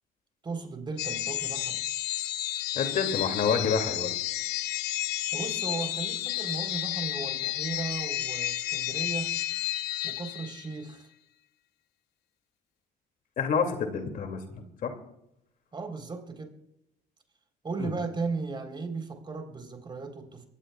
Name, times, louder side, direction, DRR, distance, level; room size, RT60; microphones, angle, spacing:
voice 1, 0.4-1.8 5.3-9.4 10.0-11.1 15.7-16.6 17.6-20.5, right 4 dB, 25° right, 4 dB, 3.9 m, -36 dB
sound 1, 1.0-10.8, left 14 dB, 80° left, 0.6 m, -31 dB
voice 2, 2.7-4.1 13.4-14.9 17.8-17.9, left 6 dB, 55° left, 5 dB, 2.5 m, -28 dB
24.0 x 16.5 x 2.4 m, 0.80 s
cardioid pair, 110°, 17 cm